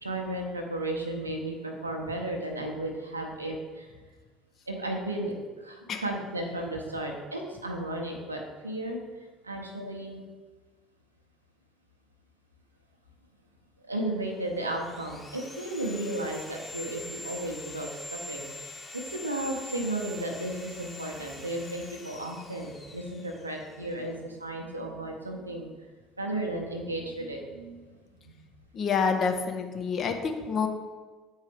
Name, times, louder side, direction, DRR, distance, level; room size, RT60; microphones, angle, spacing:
voice 1, 0.0-3.9 4.7-9.0 9.4-10.2 13.8-25.7 26.2-28.3, right 1 dB, 85° right, 1 dB, 0.8 m, -34 dB
Sawing, 14.2-24.1, left 2 dB, 15° left, 1.3 m, -44 dB
voice 2, 28.7-30.7, left 5 dB, 40° left, 5 dB, 0.7 m, -27 dB
8.3 x 4.6 x 3.4 m, 1.4 s
figure-of-eight pair, 60°, 0 cm